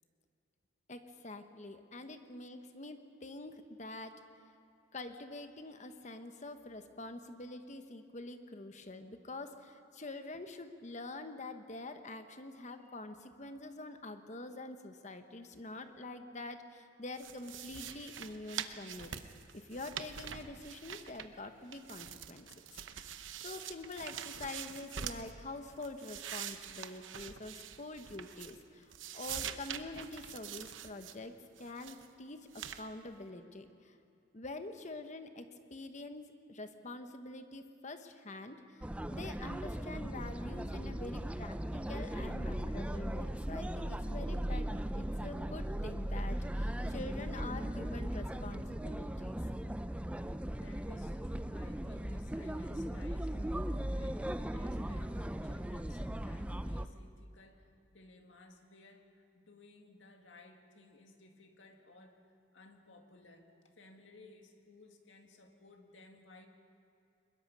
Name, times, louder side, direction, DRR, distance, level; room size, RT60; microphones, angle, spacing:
voice 1, 0.9-4.2 4.9-19.1 19.5-22.5 23.0-31.3 31.6-34.0 34.3-38.9 39.1-44.7 44.9-49.6, left 2 dB, 40° left, 8 dB, 1.1 m, -46 dB
sound 1, 17.2-21.5 21.7-25.3 25.7-28.7 28.9-31.2 31.6-32.1 32.5-32.8, right 8 dB, 90° right, 0.9 m, -45 dB
sound 2, 38.8-56.9, right 1 dB, 5° right, 0.4 m, -38 dB
voice 2, 50.6-62.2 62.5-66.5, left 2 dB, 80° left, 4 dB, 2.0 m, -59 dB
22.5 x 21.0 x 5.4 m, 2.6 s
head